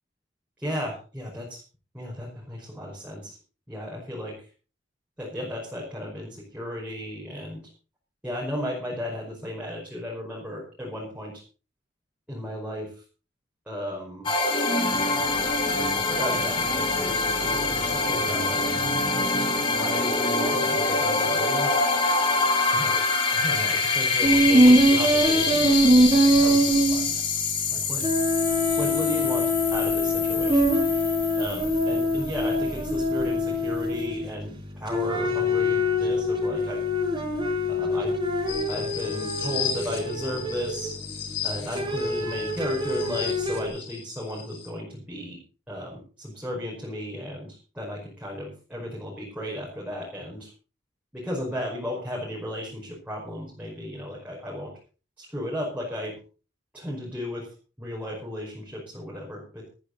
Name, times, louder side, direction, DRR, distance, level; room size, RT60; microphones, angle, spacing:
voice 1, 0.6-1.6 1.9-3.4 3.7-4.5 5.2-7.6 8.2-11.4 12.3-12.9 13.7-14.3 15.8-18.6 19.7-21.7 22.7-23.0 23.3-27.2 27.7-28.1 28.8-29.4 29.7-30.8 31.4-36.8 37.7-38.2 38.7-40.9 41.4-45.4 45.7-50.5 51.1-54.7 55.2-56.1 56.7-57.5 57.8-59.6, equal, 10° right, -4 dB, 5.3 m, -35 dB
sound 1, 14.3-32.7, left 3 dB, 25° left, 2.8 m, -25 dB
sound 2, 24.2-27.7 28.0-34.4 34.9-41.1 41.7-43.7, equal, 25° right, 4.9 m, -23 dB
sound 3, 38.5-44.7, left 7 dB, 85° left, 4.2 m, -35 dB
15.0 x 13.5 x 4.1 m, 0.36 s
head